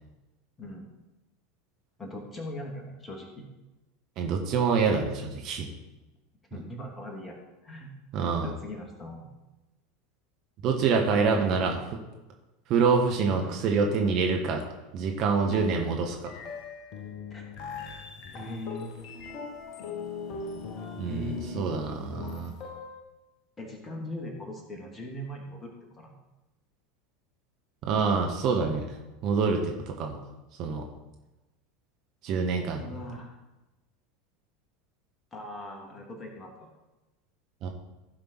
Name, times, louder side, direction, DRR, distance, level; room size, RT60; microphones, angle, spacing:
voice 1, 0.6-0.9 2.0-3.4 6.5-7.4 7.6-7.9 8.4-9.3 11.3-11.8 13.4-13.6 17.3-17.6 18.3-19.1 21.1-21.7 23.6-26.1 32.8-33.3 35.3-36.7, left 1 dB, 20° left, 1 dB, 2.5 m, -40 dB
voice 2, 4.2-5.7 8.1-8.5 10.6-11.8 12.7-14.6 14.9-16.3 21.0-22.5 27.8-29.0 29.2-30.2 30.6-30.8 32.2-32.8 37.6-37.7, right 5 dB, 45° right, 2 dB, 1.4 m, -26 dB
sound 1, 15.5-23.0, left 4 dB, 45° left, 1.2 m, -40 dB
15.0 x 6.0 x 4.6 m, 1.0 s
figure-of-eight pair, 80°, 0 cm